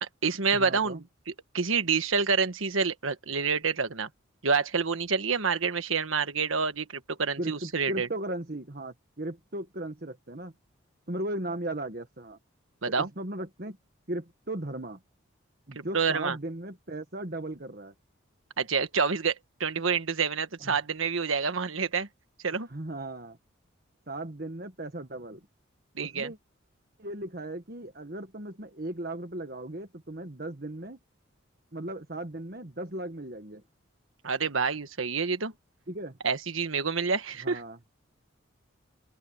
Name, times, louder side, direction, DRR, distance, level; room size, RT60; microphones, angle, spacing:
voice 1, 0.0-1.0 1.5-4.1 4.4-8.1 12.8-13.1 15.7-16.4 18.6-19.3 19.6-22.1 22.4-22.7 25.9-26.3 34.2-35.5 36.2-37.6, right 5 dB, 85° right, 1.4 m, -28 dB
voice 2, 0.5-1.0 7.4-10.5 11.1-12.4 12.9-13.8 14.1-15.0 15.7-17.9 20.6-20.8 22.7-23.4 24.1-25.5 26.0-26.4 27.0-31.0 31.7-33.6 35.9-36.2 37.4-37.8, right 1 dB, 45° right, 1.5 m, -37 dB
open air
head